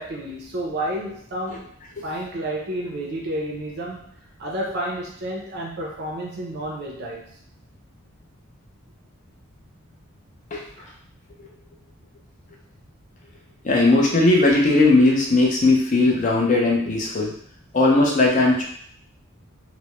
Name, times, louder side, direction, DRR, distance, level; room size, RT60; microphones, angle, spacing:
voice 1, 0.0-1.7 2.0-4.1 4.4-7.4 10.8-10.9, right 1 dB, 50° right, -2 dB, 0.5 m, -30 dB
voice 2, 13.6-17.3 17.7-18.6, left 2 dB, 40° left, -1 dB, 0.5 m, -18 dB
2.2 x 2.0 x 2.9 m, 0.63 s
head